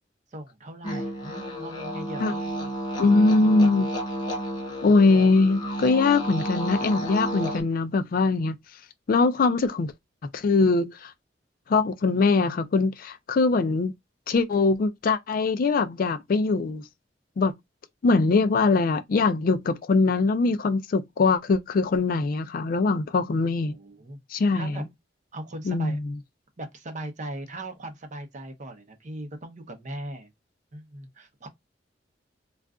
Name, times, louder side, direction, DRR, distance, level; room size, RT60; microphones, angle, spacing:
voice 1, 0.3-2.7 23.6-24.2 24.5-24.9 25.3-26.0 26.6-30.3 30.7-31.5, right 1 dB, 45° right, 0.7 m, -39 dB
sound 1, 0.8-7.6, right 1 dB, 25° left, 0.9 m, -31 dB
voice 2, 3.0-3.9 4.8-8.6 9.1-9.9 10.3-11.1 11.7-13.9 14.3-16.8 17.4-17.5 18.0-23.8 24.3-24.8 25.7-26.1, left 3 dB, 50° left, 0.4 m, -22 dB
2.4 x 2.2 x 3.4 m
head